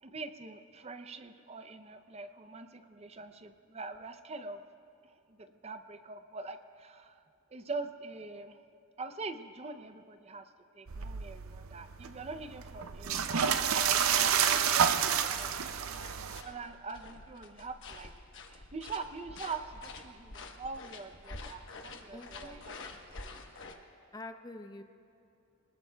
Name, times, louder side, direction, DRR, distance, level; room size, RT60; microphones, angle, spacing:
voice 1, 0.0-4.6 5.3-7.2 7.5-8.6 9.0-10.5 10.7-15.0 15.3-15.5 16.4-18.1 18.5-22.8 23.2-23.4, right 4 dB, 30° right, 9 dB, 0.5 m, -44 dB
sound 1, 10.9-16.4, right 8 dB, 80° right, 0.6 m, -29 dB
sound 2, 13.8-23.7, left 3 dB, 60° left, 1.1 m, -49 dB
voice 2, 22.1-22.6 24.1-24.8, left 2 dB, 20° left, 7 dB, 0.5 m, -46 dB
26.5 x 20.0 x 2.3 m, 2.6 s
head